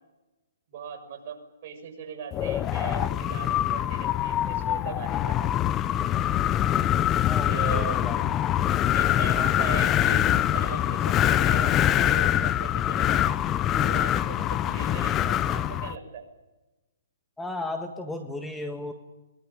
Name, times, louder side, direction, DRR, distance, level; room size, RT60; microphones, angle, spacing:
voice 1, 0.7-5.6 7.4-8.0 8.9-13.4 13.7-16.2, right 7 dB, 45° right, 4 dB, 6.7 m, -39 dB
Wind, 2.3-16.0, left 12 dB, 20° left, 0.7 m, -24 dB
voice 2, 7.3-8.5 17.4-18.9, left 2 dB, 5° left, 6 dB, 1.6 m, -35 dB
23.0 x 22.0 x 8.9 m, 1.1 s
hypercardioid pair, 145°, 0 cm